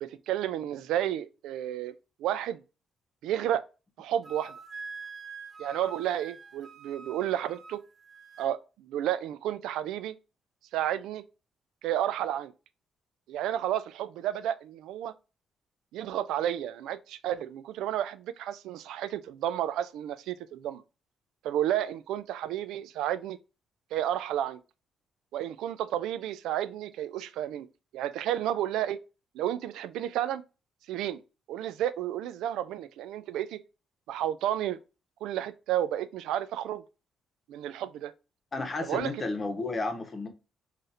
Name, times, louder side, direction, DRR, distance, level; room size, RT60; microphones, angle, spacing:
voice 1, 0.0-1.9 2.2-2.6 3.2-3.6 4.0-4.6 5.6-7.8 8.4-10.2 10.7-11.2 11.8-12.5 13.3-15.1 15.9-20.8 21.4-23.4 23.9-24.6 25.3-27.7 27.9-29.0 29.3-30.4 30.9-31.2 31.5-33.6 34.1-34.8 35.2-36.8 37.5-38.1 38.9-39.1, right 11 dB, 90° right, 0.3 m, -31 dB
Wind instrument woodwind instrument, 4.2-8.5, right 4 dB, 40° right, 0.6 m, -45 dB
voice 2, 38.5-40.3, left 3 dB, 35° left, 0.9 m, -32 dB
4.1 x 2.5 x 2.5 m
cardioid pair, 90°, 0 cm